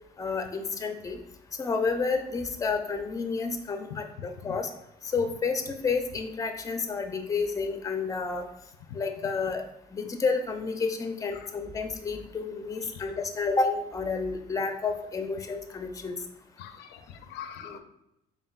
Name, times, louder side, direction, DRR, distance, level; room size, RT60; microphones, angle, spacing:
voice 1, 0.2-1.2 1.6-4.7 5.1-8.4 8.9-9.6 9.9-16.1 17.6-17.8, left 4 dB, 20° left, 5 dB, 0.5 m, -30 dB
voice 2, 16.6-17.8, left 9 dB, 85° left, 9 dB, 0.4 m, -43 dB
4.3 x 3.5 x 2.4 m, 0.83 s
cardioid pair, 110°, 17 cm